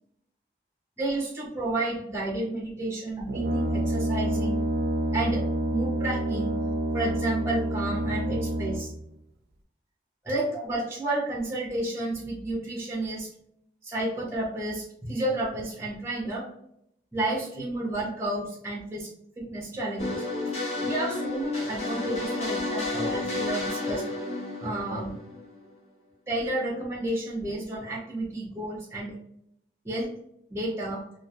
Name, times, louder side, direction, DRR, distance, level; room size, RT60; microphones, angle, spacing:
voice 1, 1.0-4.6 5.1-5.4 5.7-6.5 6.9-8.9 10.2-13.3 13.8-16.5 17.1-19.1 19.4-20.2 20.8-24.0 24.6-25.2 26.3-29.2 29.8-30.1 30.5-31.0, right 1 dB, 15° right, -5 dB, 0.6 m, -31 dB
Brass instrument, 3.3-9.0, right 1 dB, 65° right, 0.4 m, -28 dB
sound 1, 20.0-25.7, left 2 dB, 40° left, 0.7 m, -31 dB
2.4 x 2.2 x 2.8 m, 0.75 s
head